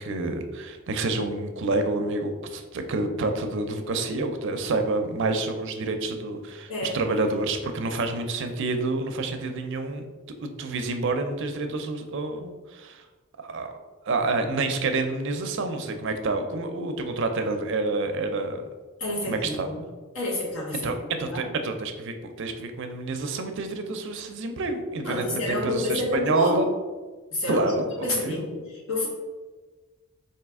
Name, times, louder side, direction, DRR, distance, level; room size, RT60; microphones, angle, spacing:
voice 1, 0.0-13.0 13.4-13.8 14.0-18.6 19.3-19.7 20.8-26.7 27.5-28.5, right 3 dB, 60° right, 6 dB, 0.4 m, -28 dB
voice 2, 19.0-19.8 20.1-21.5 25.0-26.6 27.3-27.8 28.0-29.1, left 2 dB, 70° left, -4 dB, 1.4 m, -29 dB
4.1 x 2.8 x 3.5 m, 1.3 s
head